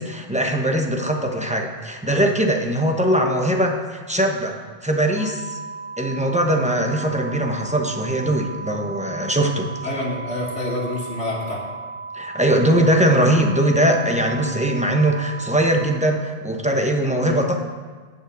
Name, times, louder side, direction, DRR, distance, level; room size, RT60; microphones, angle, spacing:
voice 1, 0.0-4.6 4.8-5.6 6.0-9.7 12.1-17.5, right 1 dB, 5° right, 2 dB, 0.8 m, -21 dB
sound 1, 5.2-15.8, right 4 dB, 55° left, 3.2 m, -35 dB
voice 2, 9.8-11.6 17.2-17.4, left 2 dB, 85° left, -5 dB, 2.5 m, -27 dB
10.5 x 5.5 x 8.3 m, 1.5 s
omnidirectional pair, 1.2 m